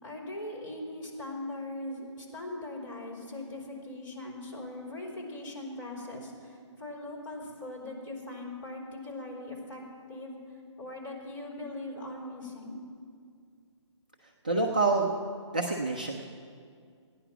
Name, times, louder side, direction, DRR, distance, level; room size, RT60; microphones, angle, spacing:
voice 1, 0.0-9.8 10.1-12.8, left 1 dB, 40° left, -4 dB, 3.8 m, -40 dB
voice 2, 14.4-15.1 15.5-16.2, right 3 dB, 15° right, -1 dB, 0.4 m, -27 dB
16.0 x 9.9 x 5.9 m, 2.2 s
hypercardioid pair, 175°, 16 cm